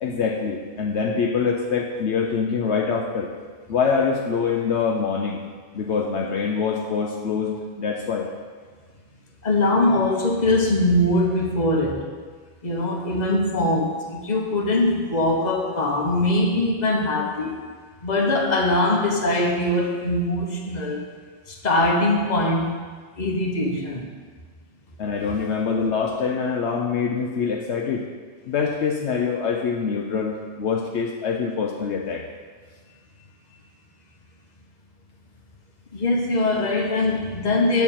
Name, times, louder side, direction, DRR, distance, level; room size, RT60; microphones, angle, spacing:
voice 1, 0.0-3.3 3.7-5.4 5.7-8.3 25.0-28.0 28.5-32.2, left 5 dB, 70° left, 1 dB, 1.0 m, -24 dB
voice 2, 9.4-12.1 12.6-17.6 18.0-21.0 21.5-22.7 23.2-24.1 35.9-37.8, left 2 dB, 40° left, 0 dB, 1.2 m, -22 dB
8.2 x 4.6 x 7.2 m, 1.6 s
omnidirectional pair, 1.2 m